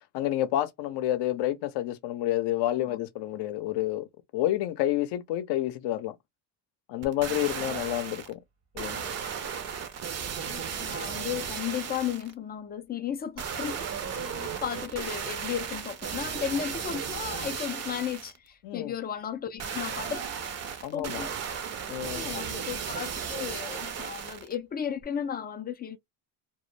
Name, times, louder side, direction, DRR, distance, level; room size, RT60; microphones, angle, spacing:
voice 1, 0.1-4.1 4.3-6.2 6.9-8.4 8.7-9.1 14.2-14.5 18.6-18.9 20.8-21.3 21.9-22.5, left 13 dB, 60° left, 0.6 m, -29 dB
sound 1, 7.0-8.3 8.8-12.3 13.4-18.4 19.6-24.6 25.0-25.1, right 7 dB, 35° right, 0.6 m, -35 dB
voice 2, 10.4-13.9 14.4-20.3 20.9-21.3 21.6-21.7 22.1-26.0, left 9 dB, 25° left, 0.3 m, -34 dB
2.1 x 2.0 x 3.1 m
supercardioid pair, 95°, 46 cm